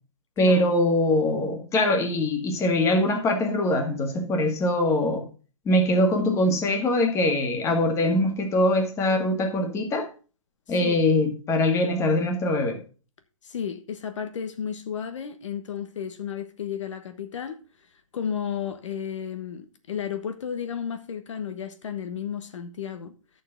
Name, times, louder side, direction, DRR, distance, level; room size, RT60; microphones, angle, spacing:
voice 1, 0.4-5.3 5.7-10.1 10.7-12.8, left 1 dB, 15° left, 1.7 m, -23 dB
voice 2, 13.4-17.6 18.1-23.1, left 8 dB, 65° left, 1.3 m, -33 dB
11.0 x 6.9 x 3.8 m
hypercardioid pair, 140°, 17 cm